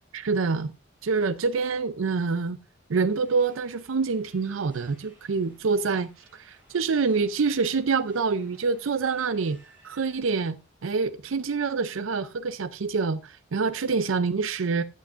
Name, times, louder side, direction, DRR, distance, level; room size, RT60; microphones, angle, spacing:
voice 1, 0.1-0.7 1.0-2.6 2.9-9.6 9.8-10.6 10.8-14.8, right 4 dB, 90° right, 0.5 m, -26 dB
sound 1, 3.1-10.2, right 1 dB, 10° right, 6.5 m, -59 dB
14.5 x 8.4 x 2.5 m
head